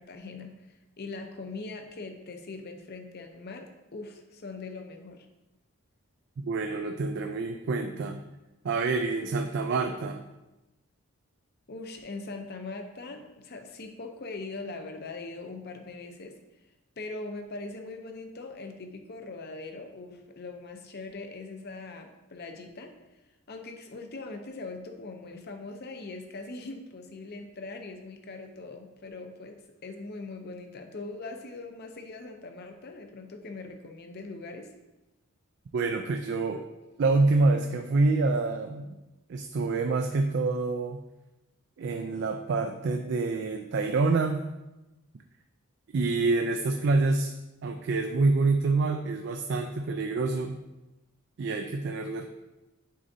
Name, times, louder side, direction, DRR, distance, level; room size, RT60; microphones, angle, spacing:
voice 1, 0.0-5.3 11.7-16.4 17.0-23.0 23.5-29.6 29.8-34.7, left 3 dB, 45° left, 5 dB, 0.6 m, -41 dB
voice 2, 6.4-8.2 8.6-10.2 35.7-36.6 37.0-39.0 39.3-41.0 41.8-44.4 45.9-47.3 47.6-50.6 51.4-52.2, right 3 dB, 55° right, 5 dB, 0.3 m, -27 dB
9.2 x 3.9 x 2.7 m, 1.0 s
head